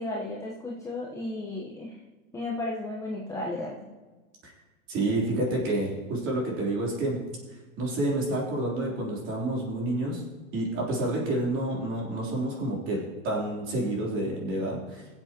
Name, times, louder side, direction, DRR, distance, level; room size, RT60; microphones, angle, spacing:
voice 1, 0.0-1.9 2.3-3.8, left 2 dB, 5° left, -4 dB, 1.0 m, -34 dB
voice 2, 4.9-7.2 7.8-10.2 10.5-13.0 13.2-15.0, right 1 dB, 30° right, -3 dB, 3.5 m, -29 dB
22.0 x 7.7 x 2.9 m, 1.3 s
hypercardioid pair, 145°, 41 cm